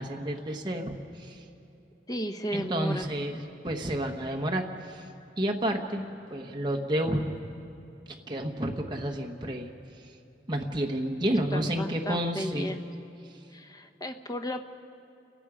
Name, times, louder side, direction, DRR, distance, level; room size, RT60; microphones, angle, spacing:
voice 1, 0.0-1.4 2.5-5.1 5.4-7.4 8.3-9.7 10.5-12.7, right 1 dB, 25° right, 1 dB, 1.2 m, -30 dB
voice 2, 2.1-3.1 11.2-12.8 13.5-14.6, equal, 20° left, 6 dB, 0.9 m, -34 dB
30.0 x 17.5 x 5.0 m, 2.8 s
head